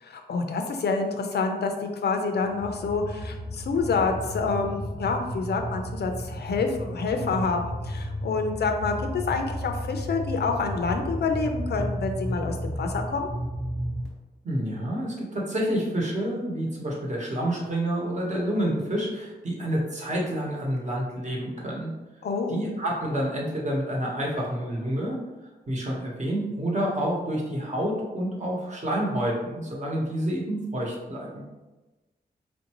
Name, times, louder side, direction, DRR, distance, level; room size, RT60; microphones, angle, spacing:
voice 1, 0.0-13.3 22.2-22.6, left 4 dB, 75° left, 4 dB, 0.5 m, -27 dB
sound 1, 2.4-14.1, equal, 80° right, 0.8 m, -33 dB
voice 2, 14.4-21.9 22.5-25.2 25.7-31.4, right 1 dB, 45° right, -3 dB, 1.0 m, -28 dB
4.4 x 2.6 x 2.9 m, 1.1 s
wide cardioid pair, 110°, 17 cm